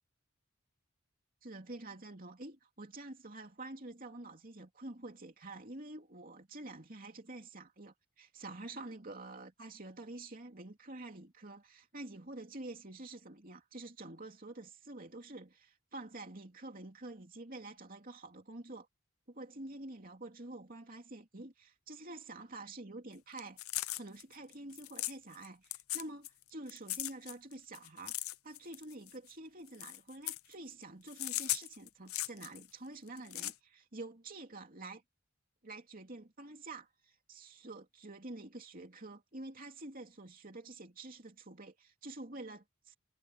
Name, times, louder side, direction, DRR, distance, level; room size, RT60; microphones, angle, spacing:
voice 1, 1.4-18.9 19.4-23.6 24.0-35.0 35.6-42.9, right 2 dB, 40° right, 2.9 m, -48 dB
sound 1, 23.4-25.5 25.7-26.4 26.7-29.3 29.7-30.5 31.1-32.7 33.1-33.5, left 16 dB, 90° left, 0.8 m, -38 dB
head